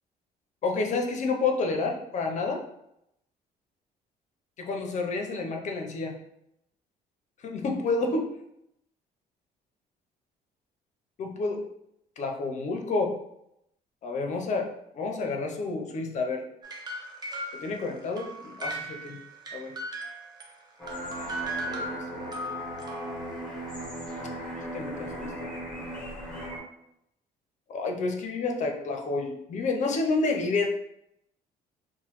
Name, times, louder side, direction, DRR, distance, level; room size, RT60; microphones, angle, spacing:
voice 1, 0.6-2.6 4.6-6.2 7.4-8.3 11.2-11.6 12.2-13.2 14.0-16.5 17.5-19.2 19.5-19.8 21.6-22.3 24.7-25.9 27.7-30.7, left 3 dB, 45° left, 3 dB, 0.5 m, -30 dB
sound 1, 16.6-20.5 20.9-23.5, right 1 dB, 25° right, 0.6 m, -38 dB
sound 2, 20.8-26.6, right 1 dB, 5° left, 0.8 m, -37 dB
3.0 x 2.1 x 2.9 m, 0.79 s
cardioid pair, 110°, 17 cm